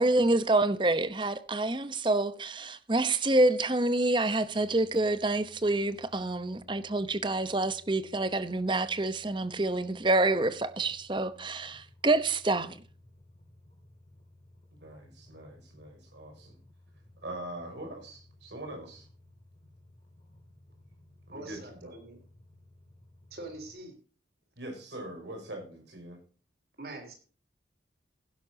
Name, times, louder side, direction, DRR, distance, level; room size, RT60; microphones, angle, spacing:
voice 1, 0.0-12.8, right 2 dB, 25° right, 0.9 m, -27 dB
sound 1, 4.5-23.7, left 1 dB, 40° left, 4.9 m, -58 dB
voice 2, 14.7-16.6 17.2-19.1 21.3-21.9 24.6-26.2, right 1 dB, 85° right, 5.9 m, -43 dB
voice 3, 21.3-22.2 23.3-23.9 26.8-27.1, right 2 dB, 60° right, 3.7 m, -43 dB
16.5 x 11.5 x 2.8 m
head